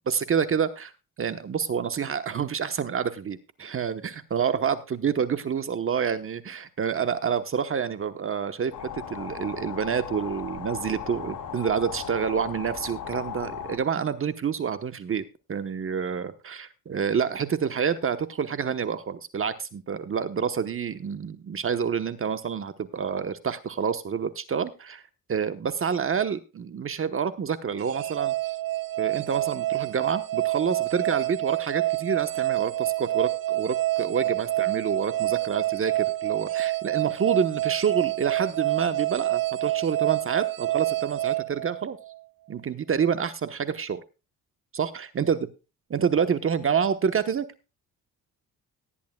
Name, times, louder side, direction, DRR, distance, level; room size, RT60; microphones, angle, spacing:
voice 1, 0.1-0.9 1.2-25.0 25.3-28.3 29.0-42.0 42.5-44.0 44.7-45.4 45.9-47.4, right 7 dB, 40° right, 11 dB, 1.0 m, -28 dB
sound 1, 8.7-13.8, left 8 dB, 70° left, 4.5 m, -37 dB
sound 2, 27.8-42.2, right 16 dB, 80° right, 0.8 m, -27 dB
18.0 x 11.5 x 2.2 m, 0.29 s
cardioid pair, 135°, 35 cm